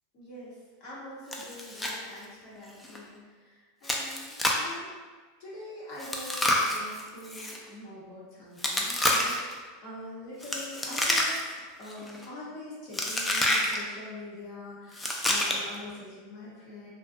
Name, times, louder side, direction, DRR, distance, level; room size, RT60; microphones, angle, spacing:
voice 1, 0.1-3.5 3.8-4.9 5.4-11.5 11.8-16.9, left 1 dB, 55° left, -8 dB, 0.9 m, -44 dB
Chewing mastication, 1.3-2.0 2.2-2.3 2.8-3.0 3.8-4.7 6.0-7.6 8.6-9.5 10.4-11.6 11.9-12.2 12.9-13.8 14.9-15.8, left 1 dB, 10° left, 0.3 m, -28 dB
2.5 x 2.2 x 2.5 m, 1.4 s
supercardioid pair, 130°, 0 cm